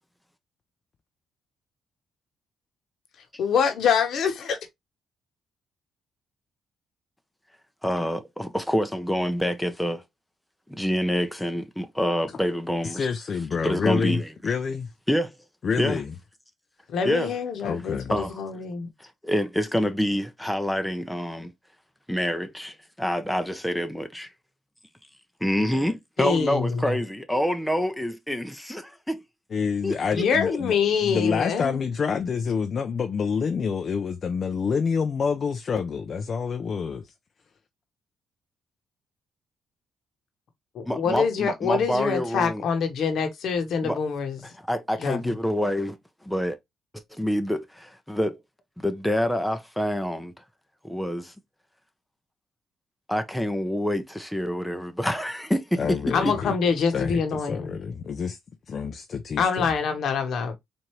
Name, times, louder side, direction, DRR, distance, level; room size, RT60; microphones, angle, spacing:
voice 1, 3.4-4.6 16.9-18.9 26.2-26.9 30.1-31.8 40.7-44.4 45.0-45.2 56.1-57.8 59.4-60.5, left 6 dB, 70° left, 1.1 m, -25 dB
voice 2, 7.8-10.0 10.7-13.1 13.6-14.3 15.1-15.3 15.8-16.0 17.0-17.4 18.1-18.6 19.0-21.5 22.1-24.3 25.4-29.2 29.8-30.2 40.9-42.6 43.8-44.0 44.4-46.0 46.2-46.6 47.1-48.4 48.8-50.3 50.8-51.3 53.1-56.0 56.2-56.3, equal, 5° left, 0.7 m, -27 dB
voice 3, 12.8-14.9 15.6-16.1 17.6-18.1 29.5-30.8 31.0-37.1 55.8-56.5 56.9-58.4 58.7-59.7, left 6 dB, 50° left, 0.5 m, -27 dB
4.3 x 2.6 x 3.1 m
cardioid pair, 90°, 0 cm